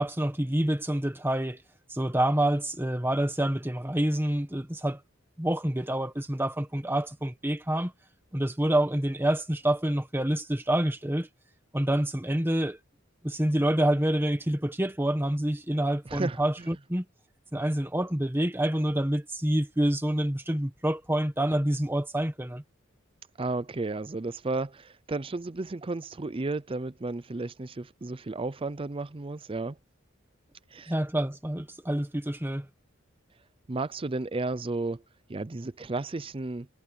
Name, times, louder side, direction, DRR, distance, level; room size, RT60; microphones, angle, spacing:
voice 1, 0.0-1.6 1.9-5.0 5.4-7.9 8.3-11.3 11.7-12.8 13.2-17.0 17.5-22.6 30.9-32.7, right 1 dB, 10° right, 1.4 m, -27 dB
voice 2, 16.1-16.7 23.4-29.8 30.7-30.9 33.7-35.0 35.3-36.7, right 3 dB, 25° right, 0.5 m, -33 dB
head